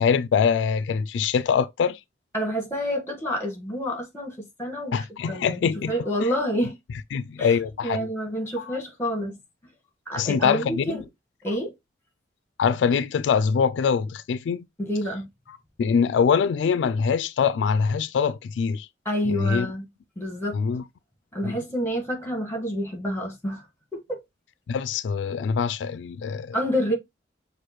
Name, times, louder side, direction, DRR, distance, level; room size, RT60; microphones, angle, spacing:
voice 1, 0.0-2.0 4.9-5.9 7.1-8.1 8.6-8.8 10.2-11.0 12.6-14.6 15.8-18.9 19.3-19.7 20.5-20.8 21.4-21.6 24.7-26.6, left 6 dB, 85° left, 0.3 m, -23 dB
voice 2, 2.3-5.6 5.9-6.8 7.4-9.4 10.1-11.0 11.4-11.7 14.8-15.2 19.0-19.9 20.2-20.6 21.3-23.7 23.9-24.2 26.5-26.9, equal, 15° left, 1.5 m, -28 dB
6.3 x 2.5 x 3.0 m
head